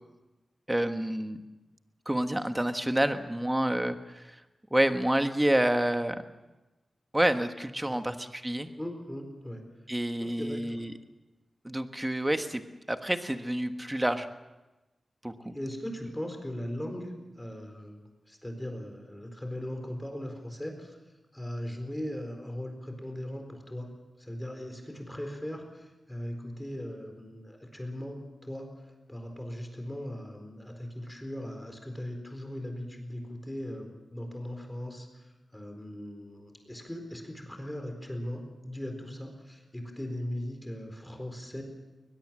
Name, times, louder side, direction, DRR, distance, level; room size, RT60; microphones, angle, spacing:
voice 1, 0.7-1.4 2.0-4.4 4.7-6.2 7.1-8.7 9.9-10.9 11.6-12.6 12.9-14.3 15.2-15.5, right 1 dB, 10° right, 8 dB, 1.4 m, -28 dB
voice 2, 8.8-9.6 10.2-10.8 15.5-21.0 21.3-23.9 24.2-28.2 28.4-28.7 29.1-35.1 35.5-41.6, left 1 dB, 10° left, 4 dB, 4.2 m, -39 dB
21.5 x 21.0 x 7.5 m, 1.1 s
wide cardioid pair, 110°, 0 cm